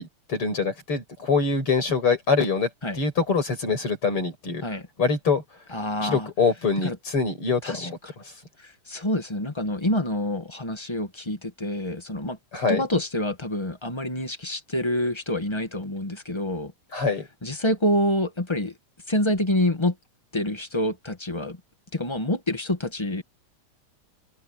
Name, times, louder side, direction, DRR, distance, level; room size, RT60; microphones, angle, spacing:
voice 1, 0.0-2.7 2.9-4.6 5.0-5.4 6.0-8.0 12.5-12.8 16.9-17.3, left 4 dB, 45° left, 6.9 m, -24 dB
voice 2, 5.7-6.3 6.8-6.9 7.6-7.9 8.6-16.7 17.4-18.7 19.1-19.9 20.3-21.6 21.9-23.2, left 1 dB, 20° left, 0.7 m, -27 dB
omnidirectional pair, 3.4 m